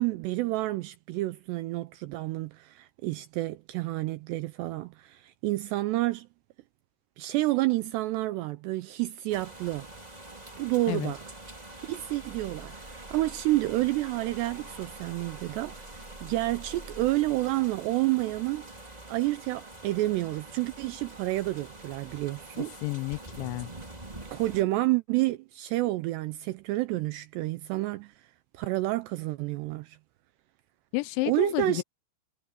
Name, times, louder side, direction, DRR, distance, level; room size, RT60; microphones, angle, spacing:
voice 1, 0.0-6.3 7.2-9.9 10.6-11.2 11.8-18.7 19.1-22.7 24.3-28.3 28.5-30.0 31.3-31.8, right 18 dB, 80° right, 2.5 m, -29 dB
sound 1, 9.3-24.6, right 2 dB, 10° right, 2.1 m, -45 dB
voice 2, 22.6-23.7 30.9-31.8, left 21 dB, 85° left, 2.8 m, -31 dB
omnidirectional pair, 5.5 m